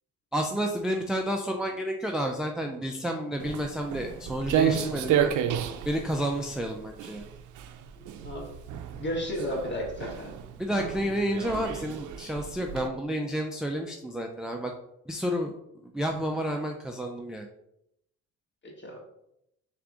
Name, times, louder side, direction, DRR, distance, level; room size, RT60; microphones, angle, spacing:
voice 1, 0.3-5.3 5.9-7.2 10.6-14.7 15.1-15.5 15.9-17.5, equal, ahead, 2 dB, 0.4 m, -30 dB
Walk footsteps, 3.4-12.9, right 9 dB, 80° right, 0.5 m, -31 dB
voice 2, 8.0-8.5 8.9-10.3 18.6-19.0, equal, 40° left, -1 dB, 1.5 m, -34 dB
3.5 x 3.4 x 3.7 m, 0.80 s
cardioid pair, 90°, 30 cm